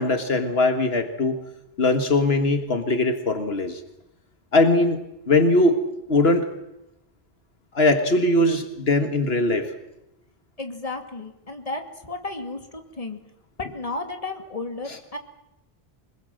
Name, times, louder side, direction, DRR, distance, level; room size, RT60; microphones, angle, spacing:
voice 1, 0.0-1.4 1.8-3.8 4.5-5.0 5.3-5.8 6.1-6.5 7.8-9.7, left 2 dB, 75° left, 7 dB, 1.8 m, -20 dB
voice 2, 10.6-13.2 13.6-15.2, left 3 dB, 35° left, 5 dB, 2.6 m, -33 dB
24.5 x 21.5 x 7.8 m, 0.87 s
omnidirectional pair, 1.0 m